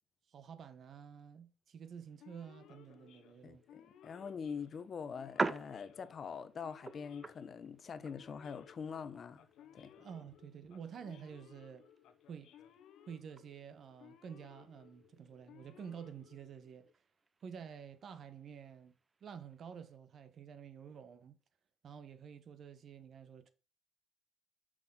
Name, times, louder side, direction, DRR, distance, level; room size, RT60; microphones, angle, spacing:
voice 1, 0.3-3.6 10.0-11.9 12.3-12.5 13.1-16.9 17.4-18.9 19.2-21.4 21.8-23.5, right 7 dB, 60° right, 1.0 m, -50 dB
sound 1, 1.8-20.0, right 3 dB, 30° right, 0.6 m, -48 dB
Male speech man speaking / Siren, 2.2-16.9, left 9 dB, 85° left, 0.8 m, -61 dB
voice 2, 3.4-9.5 9.7-9.9, left 6 dB, 50° left, 0.7 m, -44 dB
6.2 x 5.9 x 3.7 m
cardioid pair, 90°, 0 cm